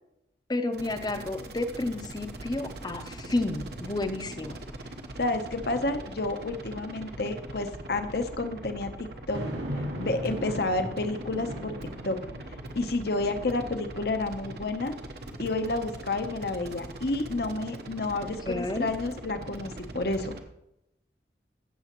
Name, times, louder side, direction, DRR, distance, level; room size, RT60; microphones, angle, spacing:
voice 1, 0.5-4.6 18.2-18.9, left 2 dB, 20° left, 9 dB, 0.7 m, -31 dB
sound 1, 0.7-20.4, right 1 dB, 60° right, 1.0 m, -42 dB
voice 2, 5.2-9.4 10.0-11.8 12.0-12.2 12.8-14.9 15.4-20.3, left 2 dB, 60° left, 8 dB, 0.8 m, -30 dB
sound 2, 9.3-14.9 15.4-15.5 19.3-20.4, equal, 85° right, 2.1 m, -39 dB
15.0 x 6.9 x 3.0 m, 0.84 s
head